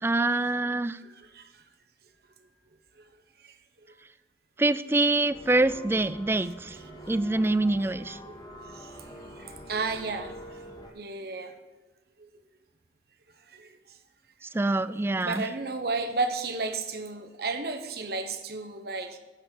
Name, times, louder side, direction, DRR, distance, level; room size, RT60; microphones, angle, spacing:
voice 1, 0.0-1.0 4.6-6.8 7.1-8.2 14.4-15.4, right 2 dB, 15° right, 14 dB, 0.3 m, -25 dB
voice 2, 1.0-1.5 3.0-3.1 3.4-3.5 6.4-6.5 8.2-8.4 8.7-10.6 10.9-11.5 12.2-12.3 13.5-13.7 15.2-19.2, right 3 dB, 60° right, 6 dB, 1.1 m, -33 dB
sound 1, 5.3-10.9, equal, 25° left, 1.3 m, -45 dB
9.7 x 5.6 x 8.4 m, 1.2 s
head